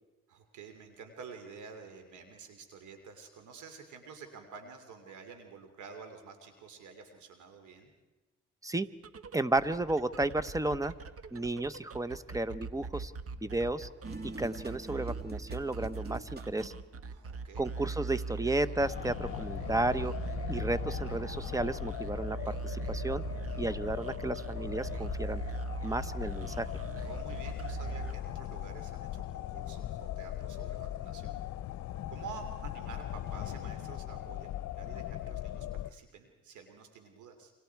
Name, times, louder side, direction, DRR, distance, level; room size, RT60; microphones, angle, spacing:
voice 1, 0.3-7.9 17.1-17.7 27.0-31.4 32.1-34.5 34.8-37.5, right 5 dB, 80° right, 6 dB, 3.0 m, -49 dB
sound 1, 8.9-28.7, right 4 dB, 50° right, 1.5 m, -41 dB
voice 2, 9.3-10.9 11.3-13.1 13.4-13.9 14.2-16.7 17.6-20.1 20.5-23.2 23.6-25.4 25.8-26.7, right 2 dB, 10° right, 14 dB, 0.9 m, -33 dB
sound 2, 14.0-16.8, right 2 dB, 35° right, 2.6 m, -45 dB
sound 3, 18.8-35.9, left 12 dB, 70° left, 0.8 m, -39 dB
30.0 x 25.5 x 4.7 m, 1.1 s
cardioid pair, 90°, 30 cm